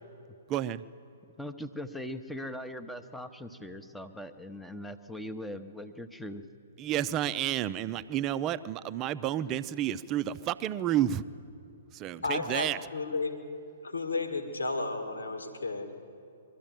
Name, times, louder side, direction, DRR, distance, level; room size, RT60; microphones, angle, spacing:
voice 1, 0.5-0.8 6.8-11.2 11.9-12.8, right 11 dB, 25° right, 14 dB, 0.5 m, -30 dB
voice 2, 1.4-6.4, left 1 dB, 5° left, 8 dB, 0.8 m, -40 dB
voice 3, 12.2-13.4 13.8-15.9, left 3 dB, 75° left, 6 dB, 1.8 m, -33 dB
22.5 x 13.5 x 9.1 m, 2.6 s
figure-of-eight pair, 120°, 0 cm